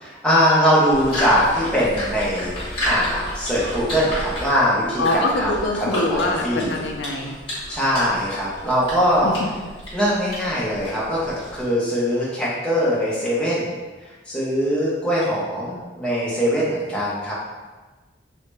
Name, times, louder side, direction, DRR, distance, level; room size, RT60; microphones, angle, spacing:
voice 1, 0.0-5.5 5.7-6.8 7.7-9.4 9.9-13.7 14.3-17.3, equal, 5° left, -8 dB, 0.8 m, -21 dB
sound 1, 0.9-11.7, equal, 30° left, 1.4 m, -32 dB
voice 2, 5.0-7.3 9.2-9.3, left 2 dB, 80° left, 2 dB, 0.4 m, -24 dB
3.1 x 2.7 x 3.3 m, 1.3 s
head